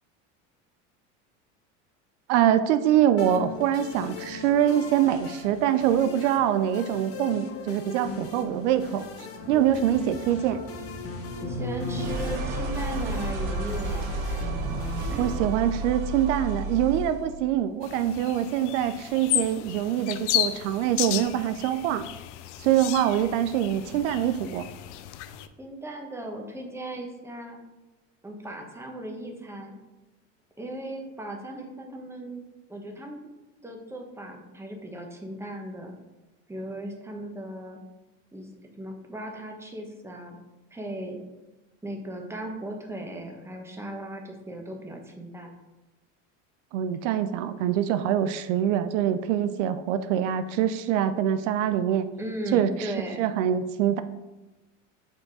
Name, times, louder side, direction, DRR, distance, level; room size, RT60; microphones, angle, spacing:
voice 1, 2.3-9.1 9.5-10.6 15.2-22.0 22.6-24.7 46.7-52.1 52.5-52.9 53.2-54.0, right 10 dB, 80° right, 11 dB, 0.6 m, -24 dB
sound 1, 3.2-16.2, left 4 dB, 40° left, 1.4 m, -39 dB
sound 2, 9.4-17.3, right 2 dB, 60° right, 1.3 m, -32 dB
voice 2, 11.4-14.5 15.1-15.4 25.6-27.6 28.2-29.8 30.6-32.4 32.7-33.2 33.6-36.0 36.5-37.8 38.3-38.5 38.8-40.4 40.7-41.2 41.8-45.5 52.2-53.2, right 1 dB, 5° right, 2 dB, 1.3 m, -37 dB
sound 3, 17.8-25.5, left 14 dB, 80° left, 0.6 m, -33 dB
7.3 x 4.5 x 4.8 m, 1.1 s
supercardioid pair, 105°, 36 cm